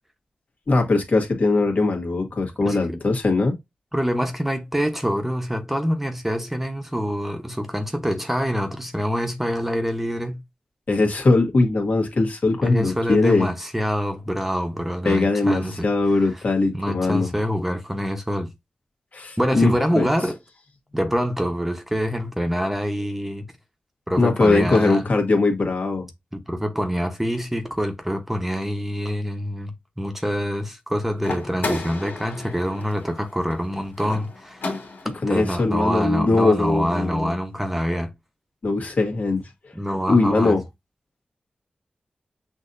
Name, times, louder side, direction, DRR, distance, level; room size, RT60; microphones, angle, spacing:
voice 1, 0.7-3.6 10.9-13.5 15.0-17.3 19.1-20.1 24.2-26.1 35.2-37.4 38.6-39.5 40.1-40.6, left 3 dB, 60° left, 1.6 m, -20 dB
voice 2, 3.9-10.4 12.6-15.9 16.3-16.4 16.7-18.5 19.4-20.4 20.9-23.5 24.1-25.1 26.3-29.7 30.0-34.7 35.3-38.1 39.7-40.5, equal, 10° right, 1.0 m, -25 dB
sound 1, 31.2-35.3, left 3 dB, 80° left, 2.1 m, -33 dB
6.2 x 2.8 x 2.6 m
cardioid pair, 60°, 3 cm